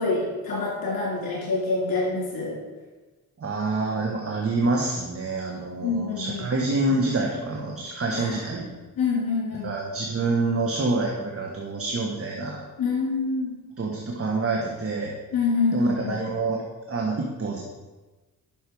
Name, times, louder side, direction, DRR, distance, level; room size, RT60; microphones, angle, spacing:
voice 1, 0.0-2.6 5.8-6.5 8.1-8.4 9.0-9.7 12.8-13.6 15.3-16.2, left 4 dB, 70° left, -5 dB, 3.5 m, -26 dB
voice 2, 3.4-8.7 9.6-12.6 13.8-15.1 15.7-16.6 16.9-17.6, right 3 dB, 40° right, 0 dB, 1.3 m, -27 dB
10.5 x 6.3 x 4.7 m, 1.2 s
cardioid pair, 90°, 36 cm